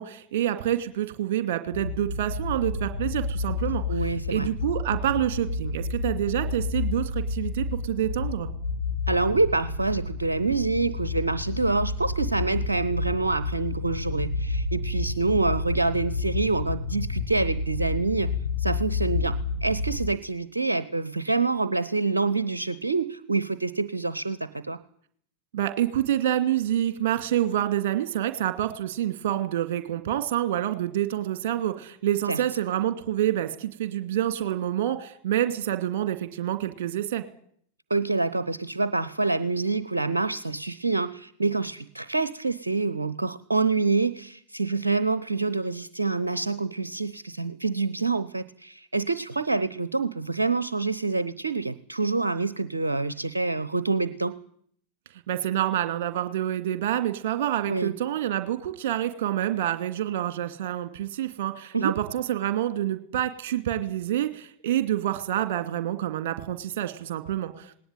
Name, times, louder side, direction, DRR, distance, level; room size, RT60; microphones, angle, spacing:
voice 1, 0.0-3.8 4.3-8.5 25.5-37.2 55.3-67.7, right 12 dB, 50° right, 9 dB, 2.4 m, -27 dB
sound 1, 1.7-20.1, left 3 dB, 85° left, 1.6 m, -30 dB
voice 2, 3.9-4.5 9.1-18.3 18.6-24.8 32.3-32.4 37.9-54.3 57.7-57.9 61.7-62.0, right 3 dB, 80° right, 14 dB, 0.8 m, -26 dB
19.0 x 18.5 x 9.2 m, 0.63 s
figure-of-eight pair, 90°, 0 cm